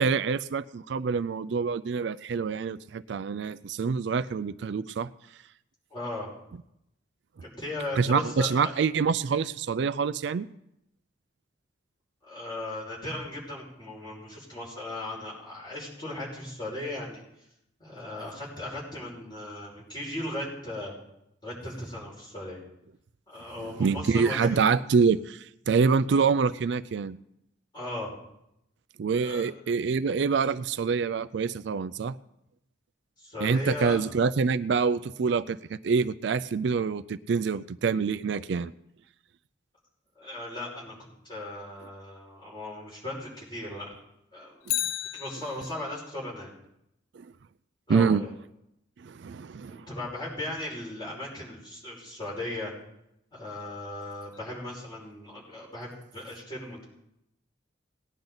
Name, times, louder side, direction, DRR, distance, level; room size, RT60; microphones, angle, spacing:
voice 1, 0.0-5.1 8.0-10.5 23.8-27.2 29.0-32.2 33.4-38.7 44.7-44.8 47.2-47.3 47.9-48.2 49.0-49.9, right 5 dB, 60° right, 14 dB, 0.4 m, -26 dB
voice 2, 5.9-6.3 7.4-8.7 12.2-17.2 17.8-20.9 21.4-22.6 23.3-24.6 27.7-28.1 29.1-29.5 33.2-34.0 40.2-44.0 44.3-44.7 45.1-46.5 47.9-48.3 49.7-52.7 53.3-56.8, left 1 dB, 25° left, -5 dB, 5.4 m, -37 dB
Bicycle, 44.6-46.0 54.3-54.4, left 14 dB, 90° left, 0.4 m, -33 dB
19.0 x 10.5 x 4.0 m, 0.81 s
head